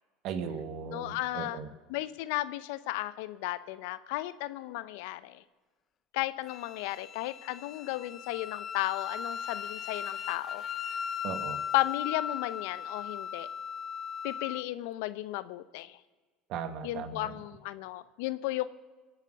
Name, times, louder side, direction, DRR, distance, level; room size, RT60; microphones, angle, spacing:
voice 1, 0.2-1.7 11.2-11.6 16.5-17.3, right 6 dB, 60° right, 10 dB, 1.5 m, -37 dB
voice 2, 0.9-1.6 1.9-5.4 6.1-10.6 11.7-13.5 14.2-16.0 16.8-18.7, left 17 dB, 75° left, 15 dB, 0.7 m, -34 dB
Wind instrument woodwind instrument, 6.5-14.6, left 8 dB, 40° left, 0.7 m, -38 dB
24.0 x 8.3 x 6.5 m, 1.4 s
hypercardioid pair, 85°, 0 cm